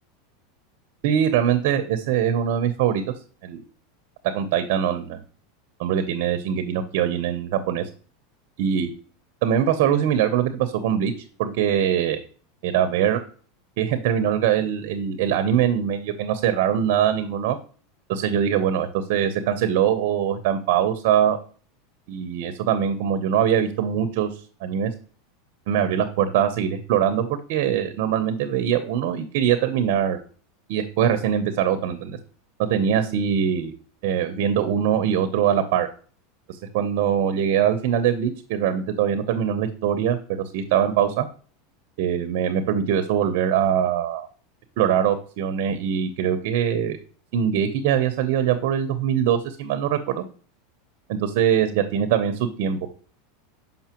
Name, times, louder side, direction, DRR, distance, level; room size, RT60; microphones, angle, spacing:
voice 1, 1.0-3.0 3.4-3.6 4.3-5.2 5.8-7.9 8.6-8.9 9.4-11.1 11.4-12.2 12.6-13.2 13.8-17.6 18.1-21.4 22.1-24.3 24.6-24.9 25.7-30.2 30.7-32.2 32.6-33.7 34.0-35.9 36.5-40.2 40.5-41.3 42.0-44.3 44.8-47.0 47.3-50.2 51.1-52.8, right 9 dB, 65° right, 9 dB, 0.8 m, -22 dB
6.7 x 5.5 x 2.9 m, 0.41 s
supercardioid pair, 130°, 0 cm